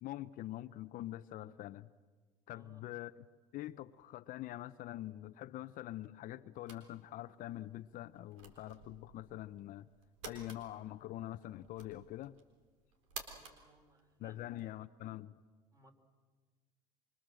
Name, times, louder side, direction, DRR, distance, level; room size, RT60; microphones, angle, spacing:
voice 1, 0.0-1.9 2.5-3.3 3.5-9.9 10.3-12.4 14.2-15.3, left 14 dB, 55° left, 0.7 m, -45 dB
voice 2, 2.5-2.8 13.3-14.4 15.7-15.9, right 2 dB, 20° right, 4.5 m, -65 dB
sound 1, 6.6-14.7, right 5 dB, 85° right, 3.9 m, -54 dB
26.0 x 25.0 x 7.7 m
supercardioid pair, 85°, 16 cm